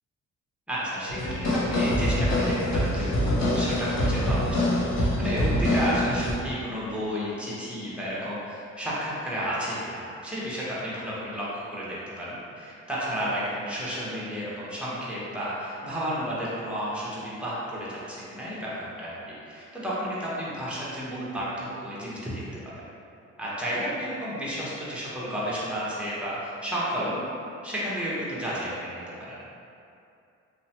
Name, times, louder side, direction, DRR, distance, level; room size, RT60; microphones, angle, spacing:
voice 1, 0.7-22.7 23.4-27.2 27.6-29.4, equal, 5° right, -8 dB, 0.8 m, -32 dB
sound 1, 1.1-6.3, left 1 dB, 65° left, 0.7 m, -25 dB
2.9 x 2.1 x 2.8 m, 2.6 s
cardioid pair, 90°, 30 cm